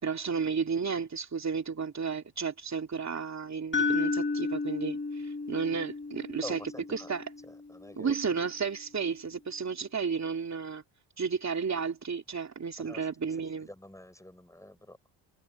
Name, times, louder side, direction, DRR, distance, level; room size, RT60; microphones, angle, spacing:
voice 1, 0.0-6.6 6.9-7.2 8.0-10.8 11.2-13.7, right 5 dB, 35° right, 2.9 m, -32 dB
sound 1, 3.7-7.8, left 4 dB, 25° left, 1.9 m, -33 dB
voice 2, 6.4-7.1 7.5-8.2 12.8-13.1 13.7-15.0, left 1 dB, 5° left, 6.9 m, -46 dB
cardioid pair, 100°, 47 cm